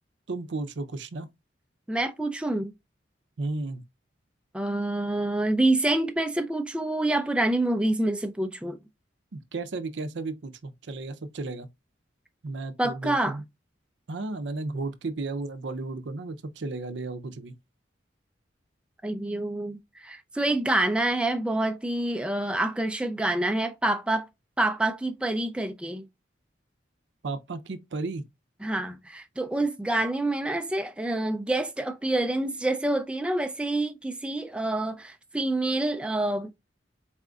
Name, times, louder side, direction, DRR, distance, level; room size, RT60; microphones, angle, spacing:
voice 1, 0.3-1.3 3.4-3.8 9.3-11.7 12.4-13.4 14.1-17.5 27.2-28.2, right 3 dB, 70° right, 0.5 m, -34 dB
voice 2, 1.9-2.7 4.5-8.8 12.8-13.4 19.0-24.3 24.6-26.1 28.6-36.5, right 2 dB, 5° right, 0.3 m, -27 dB
4.2 x 3.7 x 2.3 m
head